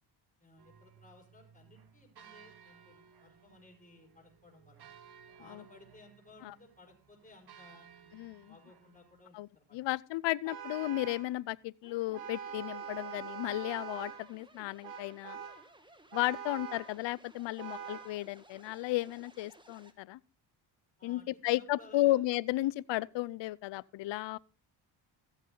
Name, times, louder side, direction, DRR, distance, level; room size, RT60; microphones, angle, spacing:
voice 1, 0.4-4.9 5.4-8.1 8.5-9.8 21.0-22.2, left 2 dB, 15° left, 5.4 m, -58 dB
sound 1, 0.6-9.2, right 7 dB, 50° right, 1.4 m, -59 dB
voice 2, 8.1-8.5 9.3-15.4 16.1-20.2 21.0-24.4, left 17 dB, 65° left, 0.6 m, -34 dB
Vehicle horn car horn honking, 10.5-11.3 12.1-14.3 14.8-15.7 16.1-17.0 17.6-18.2, right 7 dB, 85° right, 1.7 m, -43 dB
sound 2, 11.8-19.9, right 1 dB, 10° right, 1.6 m, -59 dB
14.5 x 8.1 x 3.9 m
cardioid pair, 85°, 49 cm